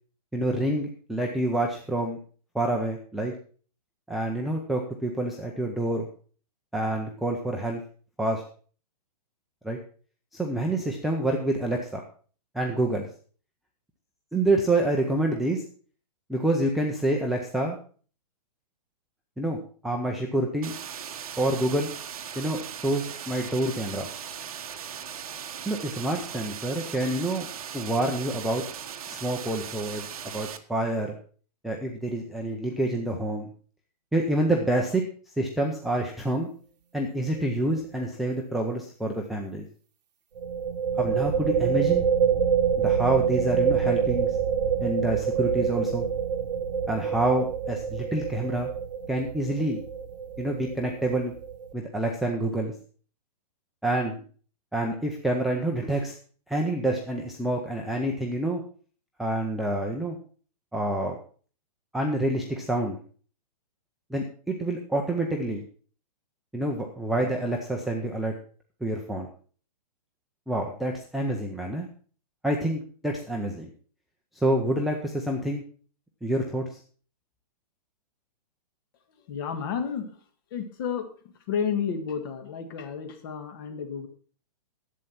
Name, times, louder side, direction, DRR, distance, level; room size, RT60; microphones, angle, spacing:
voice 1, 0.3-2.2 2.5-3.3 4.1-6.1 6.7-7.8 8.2-8.4 9.6-9.8 10.3-12.0 12.5-13.1 14.3-15.6 16.3-17.8 19.4-20.7 21.4-21.9 22.4-24.1 25.7-27.5 27.7-28.6 29.1-30.1 30.3-31.1 31.6-33.5 34.1-35.0 35.4-36.5 36.9-39.7 41.0-42.0 42.8-44.4 44.8-46.1 46.9-48.7 49.1-49.8 50.4-51.3 51.7-52.7 53.8-54.2 54.7-56.1 56.5-58.6 59.2-60.2 60.7-61.2 61.9-63.0 64.1-65.6 66.5-68.3 68.8-69.3 70.5-71.9 72.4-73.7 74.3-75.6 76.2-76.6, right 1 dB, ahead, -1 dB, 0.5 m, -27 dB
sound 1, 20.6-30.6, right 8 dB, 60° right, 1.2 m, -38 dB
sound 2, 37.2-37.5 37.8-37.9 40.4-51.7, right 7 dB, 80° right, 1.0 m, -26 dB
voice 2, 79.3-80.2 80.5-81.1 81.5-84.1, left 7 dB, 35° left, 7 dB, 1.7 m, -31 dB
11.0 x 8.2 x 5.6 m, 0.41 s
hypercardioid pair, 175°, 21 cm